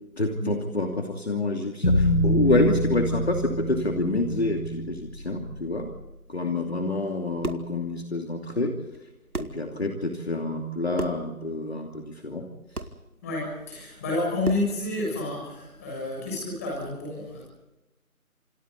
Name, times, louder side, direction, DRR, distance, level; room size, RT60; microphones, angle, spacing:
voice 1, 0.2-5.9 6.3-8.7 9.4-12.5, left 2 dB, 45° left, 2 dB, 2.8 m, -27 dB
sound 1, 1.8-6.0, equal, 90° left, 5.8 m, -26 dB
sound 2, 7.3-7.8 8.9-9.0 9.3-9.7 10.9-11.3 12.7-13.0 14.4-14.8, right 3 dB, 85° right, 2.2 m, -33 dB
voice 2, 13.2-17.4, left 2 dB, 10° left, -3 dB, 6.7 m, -30 dB
30.0 x 27.5 x 4.1 m, 1.0 s
figure-of-eight pair, 170°, 43 cm